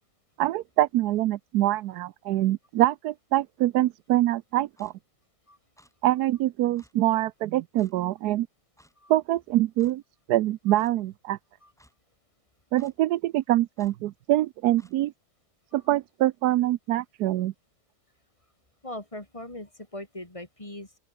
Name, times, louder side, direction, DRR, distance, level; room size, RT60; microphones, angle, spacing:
voice 1, 0.4-4.9 6.0-8.5 9.1-10.0 10.3-11.4 12.7-15.1 15.7-17.5, right 15 dB, 90° right, 1.2 m, -24 dB
Clock, 4.8-4.9 5.8-5.9 6.8-6.9 7.8-7.9 8.8-8.9 9.8-9.9 10.8-10.9 11.8-11.9 12.8-12.9 13.8-13.9 14.8-14.9, equal, ahead, 4.7 m, -58 dB
voice 2, 18.8-21.0, left 1 dB, 20° left, 3.0 m, -40 dB
open air
omnidirectional pair, 1.6 m